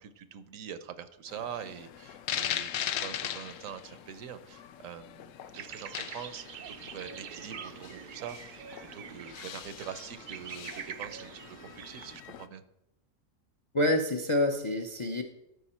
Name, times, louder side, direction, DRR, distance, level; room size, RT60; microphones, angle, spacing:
voice 1, 0.0-12.6, right 8 dB, 80° right, 12 dB, 1.1 m, -44 dB
sound 1, 1.3-12.5, left 10 dB, 75° left, 0.9 m, -40 dB
sound 2, 5.5-12.2, right 7 dB, 65° right, 0.5 m, -45 dB
voice 2, 13.7-15.2, left 1 dB, 40° left, 5 dB, 0.4 m, -27 dB
13.0 x 5.2 x 4.3 m, 0.86 s
omnidirectional pair, 1.4 m